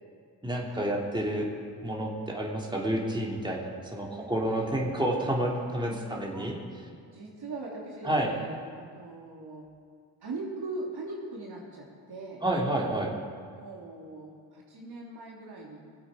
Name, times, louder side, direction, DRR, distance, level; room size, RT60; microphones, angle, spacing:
voice 1, 0.4-1.5 1.8-6.6 8.0-8.3 12.4-13.1, right 1 dB, 10° right, -2 dB, 3.0 m, -29 dB
voice 2, 4.0-5.3 5.9-6.5 7.1-9.6 10.2-12.4 13.5-15.8, right 2 dB, 50° right, -2 dB, 2.9 m, -41 dB
19.5 x 7.8 x 5.0 m, 2.1 s
hypercardioid pair, 40°, 50 cm